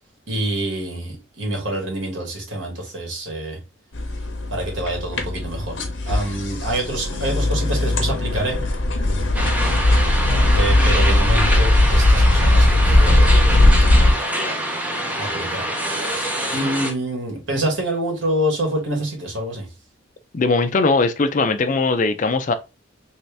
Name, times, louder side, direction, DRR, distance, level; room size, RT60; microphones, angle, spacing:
voice 1, 0.3-3.6 4.5-8.6 10.5-13.5 15.2-15.7 16.0-16.3 16.5-19.7, right 1 dB, 75° right, 1.4 m, -26 dB
sound 1, 3.9-14.1, left 1 dB, 80° left, 0.8 m, -18 dB
sound 2, 9.3-16.9, equal, 5° right, 0.6 m, -25 dB
voice 2, 20.3-22.5, left 3 dB, 40° left, 0.4 m, -19 dB
3.1 x 2.7 x 3.3 m
head